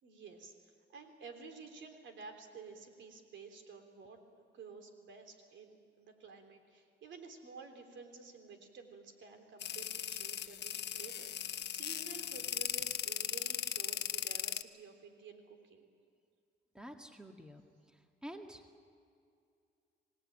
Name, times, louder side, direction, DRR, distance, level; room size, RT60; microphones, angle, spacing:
voice 1, 0.0-15.9, right 4 dB, 70° right, 6 dB, 3.4 m, -52 dB
sound 1, 9.6-14.6, left 10 dB, 60° left, 0.9 m, -38 dB
voice 2, 16.7-17.6 18.2-18.6, equal, 5° right, 4 dB, 2.0 m, -48 dB
26.5 x 18.5 x 8.9 m, 2.4 s
cardioid pair, 90°, 20 cm